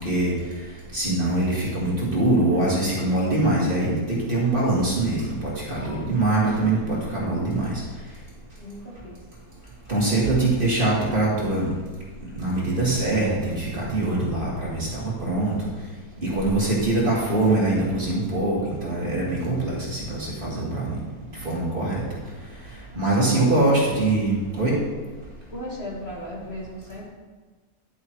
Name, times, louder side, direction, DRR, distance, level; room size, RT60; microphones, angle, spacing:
voice 1, 0.0-0.3 0.9-7.7 9.9-11.7 12.4-15.5 16.2-21.0 21.4-22.0 23.0-24.8, right 2 dB, 30° right, -6 dB, 2.1 m, -23 dB
voice 2, 8.6-9.2 22.9-23.9 25.5-27.1, left 1 dB, 40° left, -5 dB, 1.8 m, -37 dB
10.5 x 8.2 x 3.1 m, 1.3 s
omnidirectional pair, 1.8 m